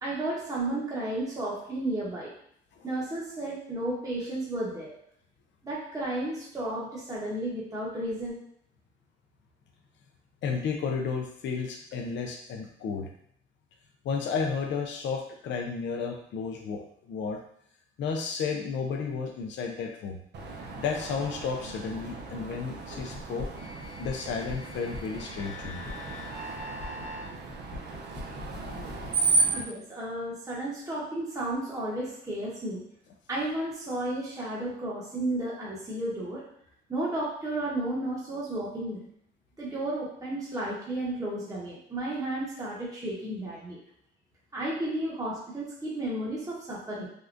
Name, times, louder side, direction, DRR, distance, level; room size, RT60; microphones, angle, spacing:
voice 1, 0.0-2.3 2.8-4.9 5.6-8.4 29.5-32.8 33.3-36.4 36.9-39.0 39.6-43.8 44.5-47.1, right 1 dB, 15° right, -7 dB, 1.0 m, -33 dB
voice 2, 10.4-13.1 14.0-16.8 17.1-17.4 18.0-20.2 20.8-23.5 24.0-25.9, left 5 dB, 70° left, 2 dB, 0.5 m, -32 dB
Screech, 20.3-29.6, right 3 dB, 60° right, 0.6 m, -33 dB
sound 1, 23.0-29.1, left 2 dB, 30° left, 0.7 m, -41 dB
3.6 x 2.1 x 2.5 m, 0.69 s
cardioid pair, 90°, 20 cm